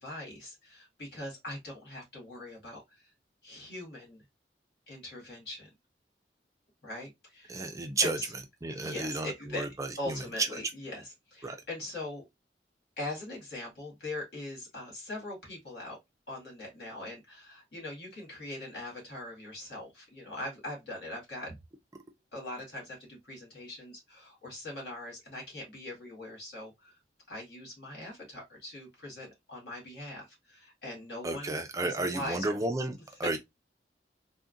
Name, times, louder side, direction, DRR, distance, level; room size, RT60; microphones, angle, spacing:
voice 1, 0.0-3.1 3.4-4.2 4.9-5.7 6.8-7.7 8.0-8.3 8.7-9.7 10.0-12.2 13.0-16.0 16.3-21.5 22.3-27.0 27.3-32.6 33.2-33.4, left 1 dB, 70° left, 1.9 m, -41 dB
voice 2, 7.5-8.2 8.6-9.9 11.4-11.6 31.2-33.4, right 2 dB, 20° right, 0.3 m, -32 dB
3.6 x 2.1 x 2.4 m
head